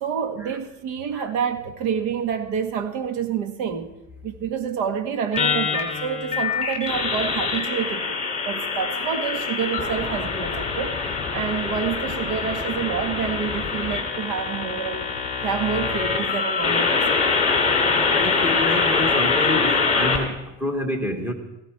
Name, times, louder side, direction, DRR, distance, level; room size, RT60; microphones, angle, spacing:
voice 1, 0.0-4.0 4.2-8.2 8.4-11.0 11.3-15.1 15.4-17.1, right 7 dB, 80° right, 1.9 m, -28 dB
sound 1, 5.3-20.2, left 4 dB, 15° left, 2.8 m, -24 dB
voice 2, 18.1-21.3, left 1 dB, 5° right, 1.4 m, -28 dB
18.0 x 16.0 x 4.7 m
cardioid pair, 165°, 43 cm